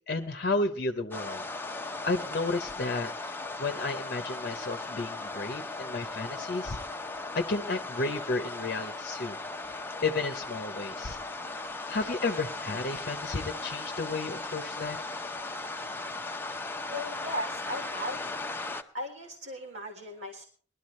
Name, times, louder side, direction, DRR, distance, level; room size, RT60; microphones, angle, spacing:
voice 1, 0.1-1.4 1.8-6.8 7.3-9.4 9.6-11.2 11.9-15.0, left 3 dB, 55° left, 6 dB, 0.8 m, -32 dB
sound 1, 1.1-18.8, left 2 dB, 10° left, 0.7 m, -37 dB
voice 2, 16.9-18.2 18.7-20.4, left 1 dB, 85° right, 1 dB, 1.6 m, -37 dB
20.0 x 12.5 x 3.2 m, 0.42 s
head